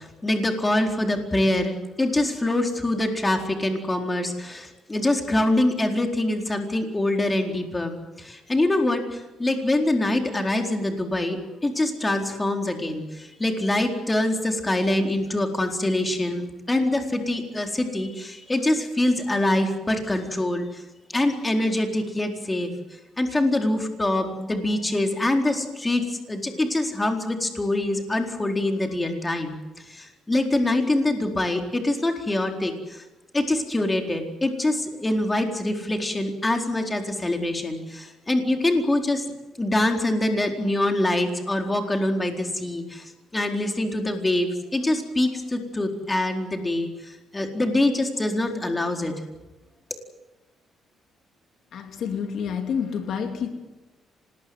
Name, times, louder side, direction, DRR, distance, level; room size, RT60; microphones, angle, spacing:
voice 1, 0.0-20.8 21.1-22.7 23.2-29.6 29.9-33.0 33.3-39.2 39.6-49.1, left 1 dB, 20° left, 4 dB, 4.2 m, -24 dB
voice 2, 51.7-53.5, left 7 dB, 70° left, 5 dB, 3.0 m, -28 dB
26.0 x 20.5 x 7.9 m, 1.1 s
cardioid pair, 90°, 0 cm